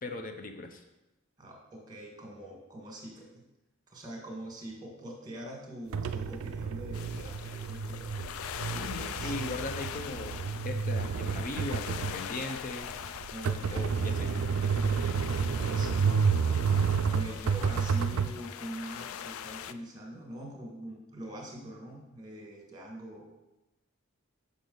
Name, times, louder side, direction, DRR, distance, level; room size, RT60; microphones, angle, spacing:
voice 1, 0.0-0.8 8.7-12.9 13.7-14.3, left 2 dB, 40° left, 6 dB, 0.6 m, -38 dB
voice 2, 1.4-3.4 3.9-8.4 9.0-9.4 13.3-14.0 15.0-16.2 17.1-23.3, right 1 dB, 20° right, -1 dB, 1.6 m, -44 dB
sound 1, 5.9-18.3, right 6 dB, 70° right, 0.4 m, -30 dB
sound 2, 6.9-19.7, left 9 dB, 75° left, 0.3 m, -42 dB
6.7 x 5.2 x 3.9 m, 1.0 s
head